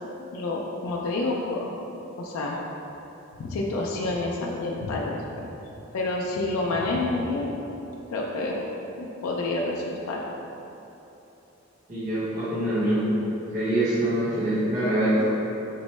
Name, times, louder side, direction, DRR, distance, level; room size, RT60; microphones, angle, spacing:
voice 1, 0.3-1.8 2.2-2.6 3.4-5.5 5.9-7.6 8.1-8.7 9.0-10.2, left 2 dB, 85° left, -3 dB, 0.3 m, -28 dB
voice 2, 11.9-13.2 13.5-15.2, right 1 dB, 40° right, -14 dB, 0.8 m, -24 dB
4.3 x 2.0 x 3.0 m, 3.0 s
head